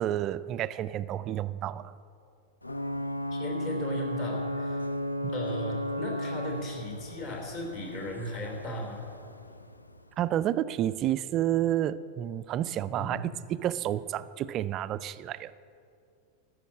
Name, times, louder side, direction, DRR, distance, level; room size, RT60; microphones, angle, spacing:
voice 1, 0.0-1.9 5.2-5.3 10.2-13.2 13.5-15.5, right 12 dB, 35° right, 0.3 m, -30 dB
Ocean / Boat Water vehicle / Alarm, 2.6-10.2, left 1 dB, 85° left, 0.4 m, -35 dB
voice 2, 3.3-4.8 5.3-9.1 12.9-13.2, left 1 dB, 40° left, 3.1 m, -37 dB
13.5 x 6.2 x 8.6 m
figure-of-eight pair, 90°, 0 cm